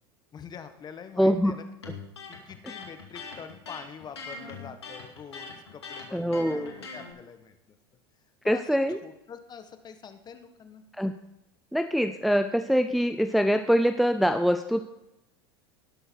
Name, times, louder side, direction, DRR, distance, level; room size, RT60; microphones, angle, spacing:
voice 1, 0.3-1.6 2.3-7.6 8.4-10.8, left 7 dB, 30° left, 9 dB, 1.4 m, -45 dB
voice 2, 1.2-1.5 6.1-6.7 8.4-9.0 11.0-11.1 11.7-14.8, equal, ahead, 8 dB, 0.6 m, -24 dB
Electric guitar, 1.8-7.1, left 4 dB, 90° left, 2.4 m, -41 dB
19.0 x 6.4 x 4.6 m, 0.88 s
hypercardioid pair, 90°, 13 cm